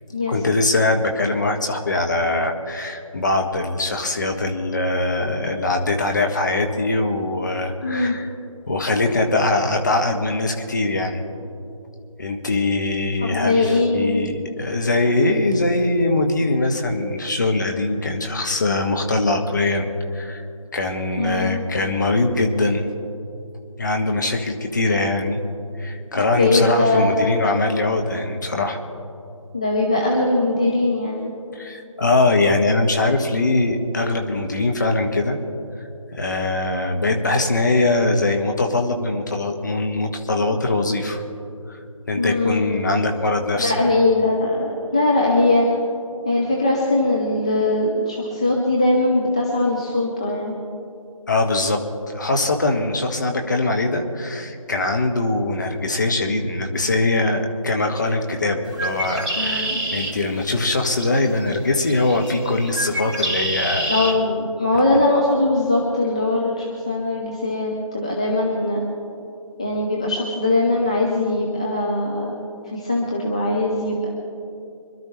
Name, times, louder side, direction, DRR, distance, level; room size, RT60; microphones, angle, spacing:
voice 1, 0.3-8.3 8.7-11.2 12.2-20.4 20.7-22.9 23.8-25.4 25.8-28.8 31.5-35.4 36.1-41.2 41.7-41.8 42.1-43.8 51.3-63.9, left 2 dB, 35° left, 3 dB, 1.4 m, -22 dB
voice 2, 7.8-8.2 13.2-14.2 21.2-21.6 26.4-27.4 29.5-31.2 42.2-42.8 43.6-45.7 46.3-50.5 59.3-59.8 63.9-68.8 69.6-74.1, left 2 dB, 10° left, -4 dB, 0.6 m, -21 dB
Bird, 58.6-64.1, right 1 dB, 15° right, 3.6 m, -28 dB
25.5 x 12.0 x 3.3 m, 2.6 s
figure-of-eight pair, 165°, 18 cm